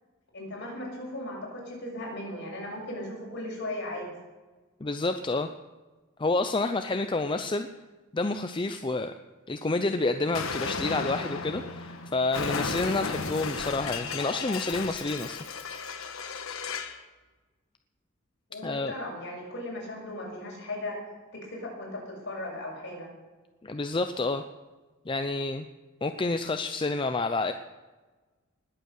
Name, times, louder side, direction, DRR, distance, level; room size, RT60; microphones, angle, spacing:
voice 1, 0.3-4.1 18.5-21.0 21.3-23.1, left 1 dB, 55° left, -2 dB, 6.3 m, -37 dB
voice 2, 4.8-5.5 6.2-7.7 8.1-9.1 9.5-15.4 18.6-18.9 23.6-24.4 25.1-25.6 26.0-27.5, left 3 dB, 25° left, 8 dB, 0.5 m, -29 dB
Explosion, 10.3-17.0, left 4 dB, 75° left, 1.3 m, -34 dB
20.0 x 8.1 x 6.6 m, 1.2 s
head